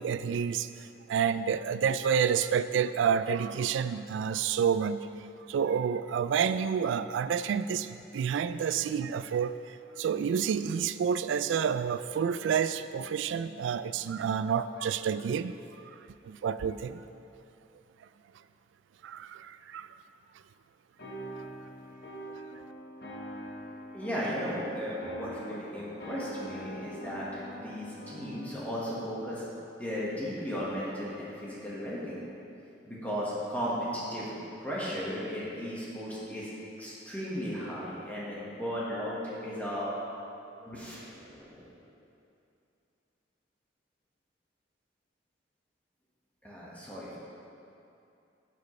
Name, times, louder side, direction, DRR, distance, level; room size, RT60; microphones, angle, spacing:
voice 1, 0.0-5.1 5.5-15.5 16.2-17.0 19.0-19.9, right 7 dB, 85° right, 13 dB, 0.3 m, -29 dB
sound 1, 21.0-28.8, equal, 55° left, 1.4 m, -44 dB
voice 2, 23.9-29.4 29.8-32.2 32.8-36.5 36.8-39.9 40.6-41.8 46.4-47.2, equal, 10° left, -8 dB, 1.5 m, -36 dB
10.5 x 7.4 x 3.2 m, 2.7 s
head